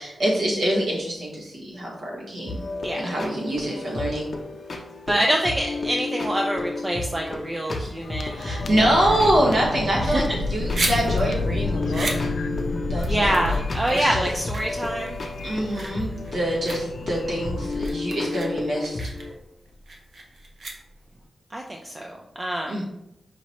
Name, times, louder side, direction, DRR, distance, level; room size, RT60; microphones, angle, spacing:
voice 1, 0.0-2.7 2.9-4.3 8.3-12.1 12.9-13.6 13.9-14.3 15.4-19.0 22.7-22.8, right 1 dB, 75° right, -4 dB, 1.4 m, -25 dB
sound 1, 2.5-19.3, left 2 dB, 45° left, 0.7 m, -33 dB
voice 2, 2.8-3.2 5.1-8.8 10.0-10.2 13.1-15.2 21.5-22.8, right 1 dB, 20° right, 1 dB, 0.4 m, -26 dB
sound 2, 8.0-17.9, left 3 dB, 85° left, 0.4 m, -30 dB
sound 3, 10.3-21.2, right 2 dB, 60° right, 0.7 m, -35 dB
5.1 x 2.8 x 3.1 m, 0.82 s
wide cardioid pair, 120°, 0 cm